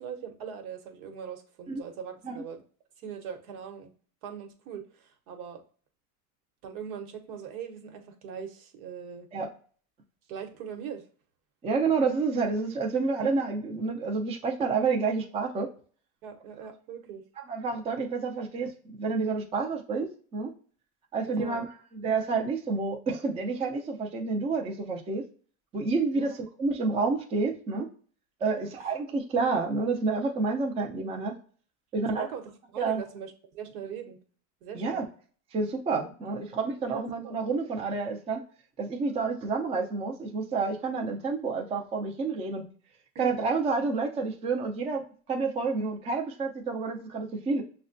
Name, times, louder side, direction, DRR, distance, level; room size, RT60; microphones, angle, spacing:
voice 1, 0.0-2.6 3.0-3.9 4.2-5.6 6.6-9.3 10.3-11.0 16.2-17.2 21.3-21.7 26.1-26.4 28.6-28.9 32.1-32.4 32.7-34.2 34.6-35.1 36.9-37.4 43.1-43.3, right 8 dB, 80° right, 5 dB, 1.1 m, -41 dB
voice 2, 11.6-15.7 17.5-18.7 19.0-20.5 21.1-21.7 21.9-25.2 25.7-26.3 26.6-27.9 28.4-31.3 31.9-32.3 32.8-33.0 34.7-35.0 35.5-38.4 38.8-42.6 43.2-47.6, right 4 dB, 15° right, 2 dB, 0.3 m, -29 dB
6.2 x 2.2 x 2.5 m, 0.42 s
supercardioid pair, 130°, 44 cm